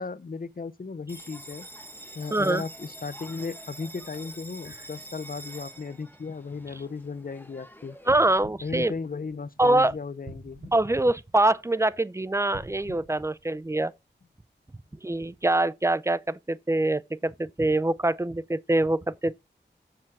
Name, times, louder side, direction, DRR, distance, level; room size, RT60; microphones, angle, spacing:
voice 1, 0.0-1.7 2.1-8.0 8.6-10.6, left 4 dB, 50° left, 0.7 m, -36 dB
Bell, 1.1-8.1, right 1 dB, 10° left, 1.4 m, -45 dB
voice 2, 2.3-2.6 8.1-8.9 9.6-9.9 10.7-13.9 15.0-19.3, right 2 dB, 15° right, 0.5 m, -24 dB
sound 1, 8.0-9.7 10.2-11.8 12.4-14.1 14.7-14.8, right 1 dB, 70° right, 3.5 m, -47 dB
7.3 x 6.8 x 4.6 m
cardioid pair, 40°, 19 cm